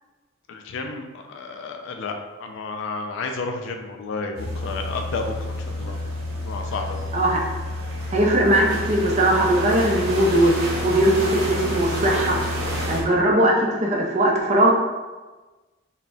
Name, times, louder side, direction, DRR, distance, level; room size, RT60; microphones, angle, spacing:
voice 1, 0.5-6.0 6.4-7.1, left 3 dB, 60° left, 4 dB, 0.3 m, -31 dB
sound 1, 4.3-13.0, left 1 dB, 90° right, 0.7 m, -29 dB
voice 2, 7.1-7.4 8.1-12.4 12.9-14.7, right 1 dB, 35° right, -1 dB, 0.4 m, -19 dB
3.8 x 2.1 x 2.2 m, 1.2 s
head